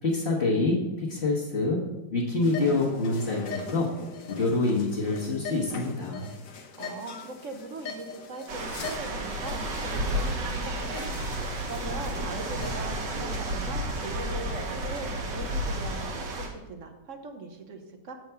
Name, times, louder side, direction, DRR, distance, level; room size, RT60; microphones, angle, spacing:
voice 1, 0.0-1.8 2.1-3.9 4.3-6.3, left 3 dB, 40° left, -4 dB, 1.3 m, -26 dB
sound 1, 2.4-13.3, left 4 dB, 55° left, 1.1 m, -42 dB
voice 2, 6.8-18.1, right 3 dB, 55° right, 5 dB, 1.0 m, -41 dB
sound 2, 8.5-16.5, right 1 dB, 75° right, 1.9 m, -32 dB
8.0 x 4.7 x 6.7 m, 1.0 s
omnidirectional pair, 2.0 m